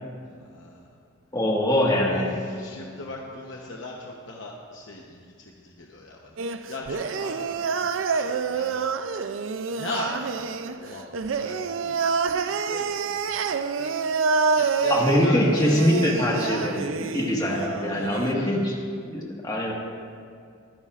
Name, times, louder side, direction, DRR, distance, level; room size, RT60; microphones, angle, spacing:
voice 1, 0.4-0.9 2.0-8.8 9.7-13.9 14.5-15.7 17.9-18.5, left 2 dB, 65° left, -1 dB, 0.9 m, -39 dB
voice 2, 1.3-2.4 14.9-18.8 19.0-19.7, left 1 dB, 20° left, -2 dB, 1.6 m, -23 dB
sound 1, 6.4-18.3, right 5 dB, 75° right, 0.4 m, -27 dB
23.5 x 9.8 x 2.5 m, 2.2 s
head